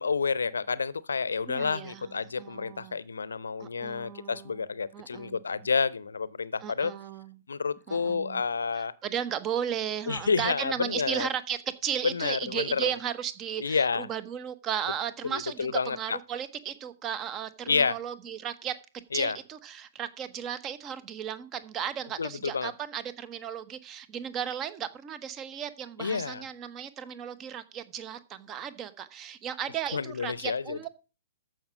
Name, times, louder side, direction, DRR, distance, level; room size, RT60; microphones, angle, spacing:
voice 1, 0.0-6.9 7.5-8.9 10.1-11.3 12.0-12.8 13.6-14.1 15.2-16.2 17.7-18.0 19.1-19.4 22.2-22.7 26.0-26.4 29.9-30.8, left 5 dB, 70° left, 0.7 m, -29 dB
voice 2, 1.5-3.0 3.6-4.7 4.9-5.4 6.6-7.4 7.9-8.4 8.7-30.9, right 9 dB, 25° right, 1.0 m, -35 dB
14.0 x 5.9 x 5.2 m
figure-of-eight pair, 115°, 0 cm